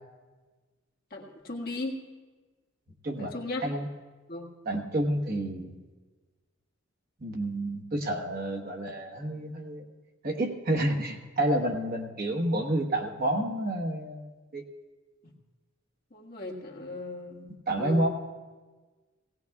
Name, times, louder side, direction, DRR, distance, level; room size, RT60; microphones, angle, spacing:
voice 1, 1.1-2.0 3.2-3.6 4.3-4.5 16.1-18.1, left 2 dB, 50° left, -1 dB, 1.7 m, -37 dB
voice 2, 3.0-3.3 3.6-3.9 4.6-5.8 7.2-9.9 10.2-14.3 14.5-14.7 17.7-18.1, right 1 dB, 50° right, 2 dB, 1.3 m, -29 dB
18.5 x 17.0 x 2.4 m, 1.4 s
head